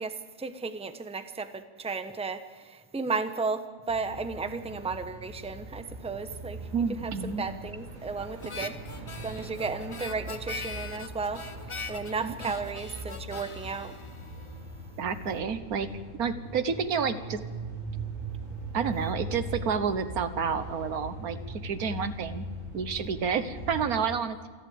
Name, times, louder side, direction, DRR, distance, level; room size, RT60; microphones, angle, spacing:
voice 1, 0.0-6.6 6.9-8.8 9.2-11.4 11.9-14.0, right 4 dB, 5° right, 9 dB, 0.8 m, -34 dB
sound 1, 3.9-23.8, right 2 dB, 70° right, 8.0 m, -41 dB
voice 2, 6.7-7.5 12.2-12.3 15.0-15.9 16.2-17.4 18.7-22.4 22.7-24.5, right 6 dB, 90° right, 11 dB, 1.6 m, -30 dB
Harmonica, 8.4-14.9, left 3 dB, 25° left, 1.0 m, -42 dB
27.5 x 11.5 x 8.7 m, 1.5 s
omnidirectional pair, 1.5 m